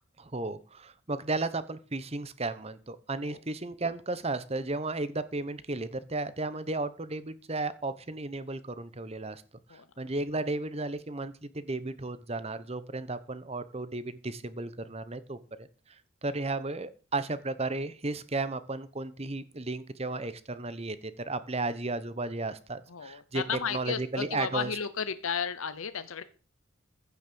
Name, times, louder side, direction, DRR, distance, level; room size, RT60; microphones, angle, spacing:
voice 1, 0.2-9.4 9.7-23.4 23.7-24.7, right 2 dB, 30° right, 14 dB, 1.0 m, -34 dB
voice 2, 22.9-26.2, left 7 dB, 85° left, 12 dB, 0.9 m, -34 dB
15.5 x 6.4 x 7.0 m, 0.37 s
head